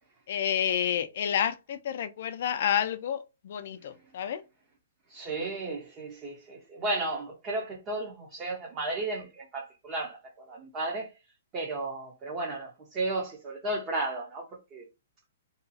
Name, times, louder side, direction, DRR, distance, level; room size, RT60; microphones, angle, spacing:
voice 1, 0.3-4.4, left 9 dB, 55° left, 0.4 m, -29 dB
voice 2, 5.1-11.1 11.5-14.8, right 2 dB, 25° right, 0.7 m, -34 dB
2.8 x 2.3 x 2.7 m
hypercardioid pair, 150°, 0 cm